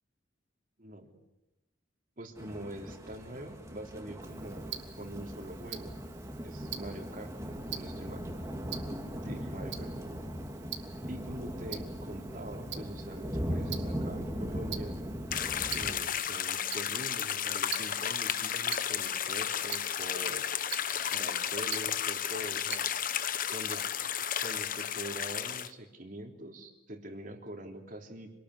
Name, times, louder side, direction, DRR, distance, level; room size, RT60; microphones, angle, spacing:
voice 1, 0.8-1.2 2.2-5.9 6.4-7.3 7.7-8.3 9.2-9.9 11.1-15.0 15.7-20.5 21.1-22.9 23.5-23.9 24.4-28.3, right 1 dB, 45° right, 3 dB, 3.6 m, -44 dB
sound 1, 2.4-15.9, equal, 15° right, 2.7 m, -39 dB
Tick-tock, 4.2-23.3, right 11 dB, 65° right, 2.3 m, -46 dB
sound 2, 15.3-25.7, left 9 dB, 45° left, 1.1 m, -33 dB
27.0 x 20.0 x 9.9 m, 1.0 s
head